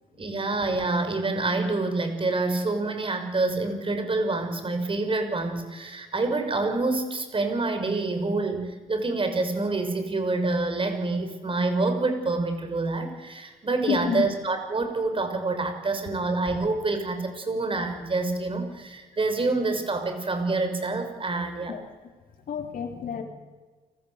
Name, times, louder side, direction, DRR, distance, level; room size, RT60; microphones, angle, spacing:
voice 1, 0.2-21.8, right 3 dB, 35° right, 7 dB, 6.6 m, -27 dB
voice 2, 13.9-14.3 21.7-21.8 22.4-23.2, left 7 dB, 65° left, 5 dB, 4.3 m, -29 dB
30.0 x 20.5 x 8.4 m, 1.4 s
cardioid pair, 70°, 15 cm